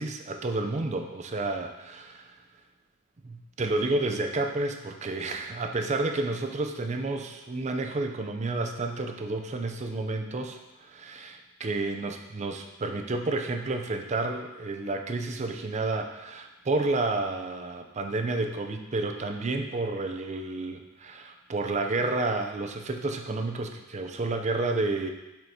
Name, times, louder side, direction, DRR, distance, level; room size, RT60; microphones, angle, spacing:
voice 1, 0.0-2.4 3.2-25.1, right 2 dB, 35° right, 5 dB, 0.5 m, -30 dB
7.7 x 4.5 x 2.8 m, 1.0 s
head